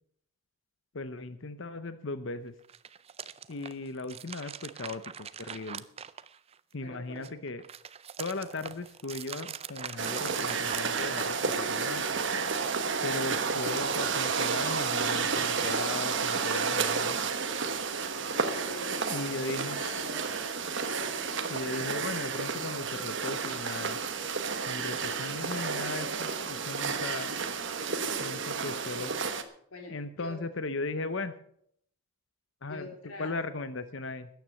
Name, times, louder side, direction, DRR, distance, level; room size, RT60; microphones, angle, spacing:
voice 1, 0.9-2.5 3.5-5.9 6.7-7.6 8.2-12.2 13.0-17.2 19.1-19.8 21.5-24.0 24.7-27.3 28.2-29.1 29.9-31.3 32.6-32.9 33.2-34.3, left 3 dB, 60° left, 12 dB, 0.8 m, -37 dB
sound 1, 2.6-6.7 7.1-11.7, right 8 dB, 25° right, 0.4 m, -43 dB
voice 2, 6.8-7.2 18.5-20.5 29.7-30.4 32.7-33.5, left 2 dB, 90° left, 2 dB, 3.1 m, -45 dB
sound 2, 10.0-29.4, right 5 dB, 55° right, 1.2 m, -31 dB
13.5 x 9.4 x 7.0 m, 0.67 s
head